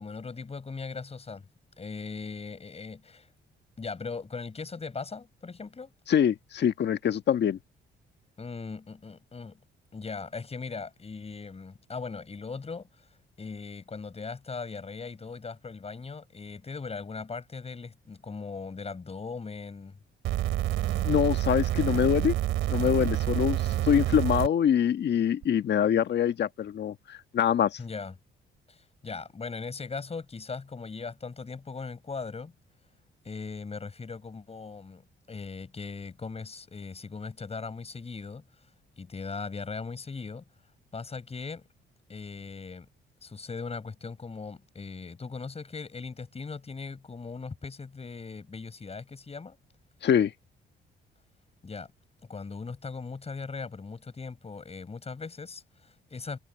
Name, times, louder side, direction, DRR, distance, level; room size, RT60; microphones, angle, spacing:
voice 1, 0.0-1.4 1.8-3.3 3.8-5.9 8.4-9.6 9.9-12.9 13.4-20.0 27.8-28.1 28.7-32.5 33.2-35.0 35.3-38.4 39.0-40.4 40.9-41.6 42.1-42.9 43.2-49.6 51.6-51.9 52.3-56.4, left 4 dB, 30° left, 6.5 m, -39 dB
voice 2, 6.1-7.6 21.0-22.3 22.7-27.8 50.0-50.3, left 9 dB, 60° left, 1.5 m, -24 dB
sound 1, 20.2-24.5 25.4-25.5, right 13 dB, 85° right, 3.4 m, -28 dB
cardioid pair, 90°, 20 cm